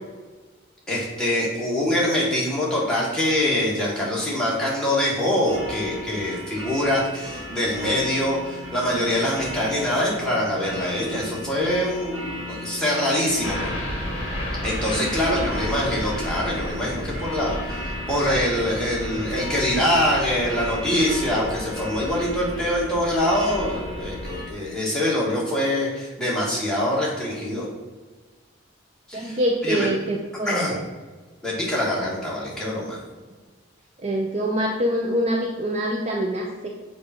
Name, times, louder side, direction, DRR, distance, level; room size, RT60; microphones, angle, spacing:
voice 1, 0.9-13.7 14.6-27.6 29.1-29.9 30.5-30.7 31.4-33.0, left 1 dB, 5° left, -6 dB, 1.5 m, -24 dB
sound 1, 5.5-24.5, left 1 dB, 85° right, 1.3 m, -36 dB
sound 2, 13.4-24.3, equal, 30° left, 1.4 m, -33 dB
voice 2, 14.9-15.6 19.3-19.4 29.1-30.8 34.0-36.7, right 1 dB, 30° right, 0 dB, 0.5 m, -25 dB
6.7 x 2.7 x 5.6 m, 1.3 s
head